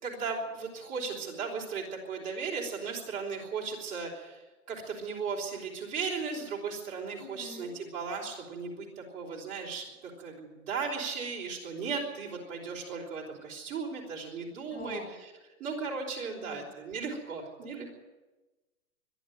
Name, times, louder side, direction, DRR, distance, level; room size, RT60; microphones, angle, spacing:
voice 1, 0.0-15.3 15.6-17.9, right 5 dB, 20° right, -4 dB, 3.8 m, -36 dB
voice 2, 7.2-7.8 14.7-15.1 16.3-16.7 17.6-17.8, left 2 dB, 50° left, 5 dB, 7.1 m, -44 dB
22.5 x 13.0 x 9.4 m, 1.1 s
hypercardioid pair, 160°, 43 cm